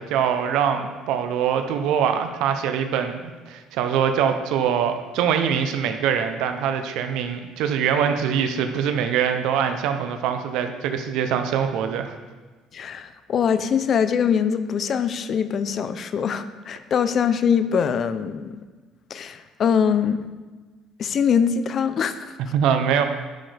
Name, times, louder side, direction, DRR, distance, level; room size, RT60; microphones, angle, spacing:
voice 1, 0.0-12.1 22.5-23.0, right 8 dB, 75° right, 7 dB, 0.7 m, -23 dB
voice 2, 12.7-18.6 19.1-20.2 21.0-22.3, left 7 dB, 40° left, 12 dB, 0.5 m, -23 dB
10.5 x 7.9 x 3.4 m, 1.3 s
cardioid pair, 145°, 0 cm